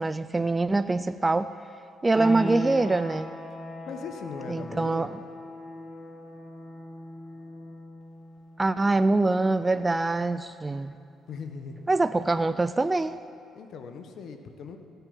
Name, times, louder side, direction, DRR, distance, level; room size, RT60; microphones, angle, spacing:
voice 1, 0.0-1.5 2.0-3.3 4.5-5.1 8.6-10.9 11.9-13.2, right 2 dB, 20° right, 12 dB, 0.4 m, -24 dB
sound 1, 2.1-12.7, left 1 dB, 10° left, 1.9 m, -40 dB
voice 2, 3.9-5.1 11.3-11.8 13.5-14.8, left 5 dB, 65° left, 7 dB, 1.1 m, -39 dB
16.5 x 8.2 x 5.5 m, 2.4 s
supercardioid pair, 70°, 0 cm